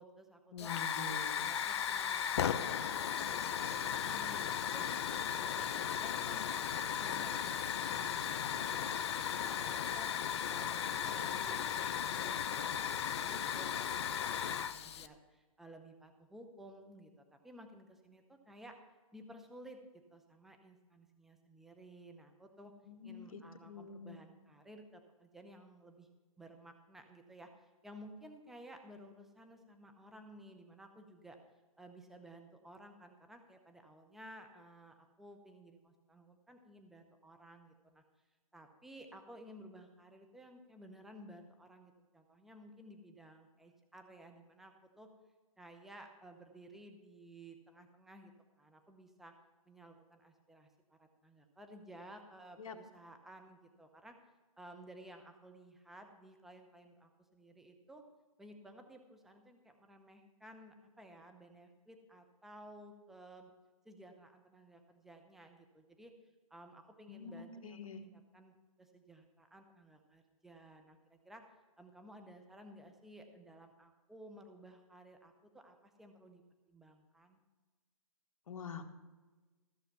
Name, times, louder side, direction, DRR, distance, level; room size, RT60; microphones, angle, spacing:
voice 1, 0.0-0.7 1.1-6.6 7.0-10.1 10.5-18.8 19.1-19.8 20.1-22.7 23.0-26.1 26.4-31.4 31.8-38.0 38.5-45.1 45.6-48.3 48.6-49.3 49.6-54.2 54.6-58.0 58.4-63.5 63.8-66.1 66.5-71.4 71.8-76.4 76.7-77.4, right 1 dB, ahead, 5 dB, 0.7 m, -56 dB
voice 2, 0.5-1.5 22.8-24.2 52.6-52.8 67.1-68.0 78.5-78.8, left 5 dB, 70° left, 6 dB, 1.4 m, -46 dB
Hiss / Fire, 0.6-15.1, left 9 dB, 45° left, 0.6 m, -36 dB
14.5 x 6.5 x 5.7 m, 1.2 s
hypercardioid pair, 150°, 19 cm